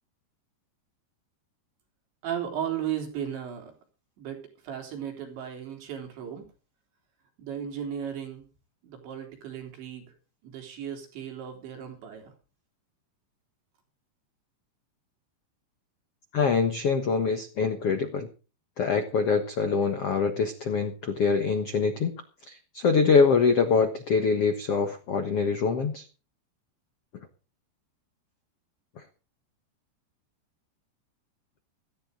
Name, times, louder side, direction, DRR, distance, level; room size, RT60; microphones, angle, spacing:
voice 1, 2.2-3.7 4.2-6.5 7.4-8.5 8.8-10.1 10.4-12.3, right 9 dB, 85° right, 3 dB, 5.9 m, -35 dB
voice 2, 16.3-18.3 18.8-26.0, left 5 dB, 85° left, 7 dB, 1.3 m, -24 dB
16.5 x 14.0 x 3.8 m, 0.35 s
omnidirectional pair, 5.1 m